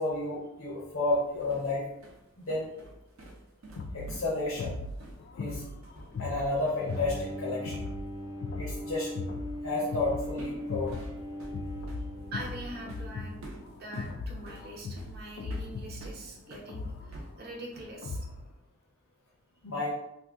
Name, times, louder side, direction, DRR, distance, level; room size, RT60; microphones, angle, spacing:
voice 1, 0.0-1.8 2.4-2.7 3.9-4.8 5.4-5.6 6.2-7.8 8.6-9.1 9.6-11.1 19.6-19.9, left 2 dB, 80° left, -6 dB, 0.7 m, -31 dB
sound 1, 1.1-7.4 7.6-7.8 9.8-10.0 10.4-16.7 17.1-18.0, right 1 dB, 85° right, 0.6 m, -49 dB
sound 2, 3.8-18.5, left 3 dB, 55° left, 0.3 m, -39 dB
Bowed string instrument, 6.8-14.0, equal, 15° right, 0.4 m, -40 dB
voice 2, 12.3-13.4 13.8-18.3, right 1 dB, 50° right, -2 dB, 0.7 m, -43 dB
2.7 x 2.4 x 3.4 m, 0.87 s
head